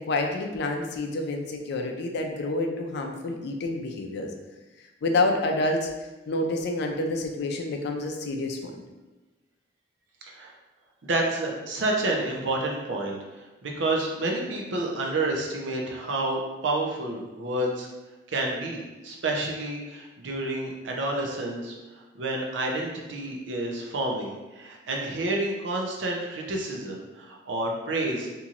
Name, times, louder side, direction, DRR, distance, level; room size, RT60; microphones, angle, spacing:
voice 1, 0.0-4.3 5.0-5.9 6.3-8.8, left 2 dB, 65° left, 3 dB, 0.4 m, -28 dB
voice 2, 11.0-13.2 13.6-17.9 18.3-21.7 22.1-28.3, right 2 dB, 80° right, 0 dB, 0.6 m, -29 dB
2.9 x 2.6 x 2.4 m, 1.1 s
head